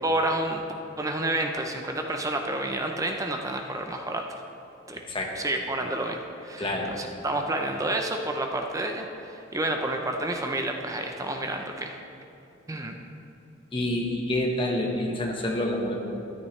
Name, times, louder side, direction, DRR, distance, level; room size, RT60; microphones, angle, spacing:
voice 1, 0.0-0.6 1.0-4.2 4.9-5.0 5.4-6.7 6.9-12.0 12.7-13.0, right 1 dB, 15° right, 3 dB, 0.6 m, -29 dB
voice 2, 6.6-6.9 13.7-16.0, left 1 dB, 25° left, 0 dB, 1.3 m, -27 dB
14.0 x 10.5 x 3.2 m, 2.8 s
head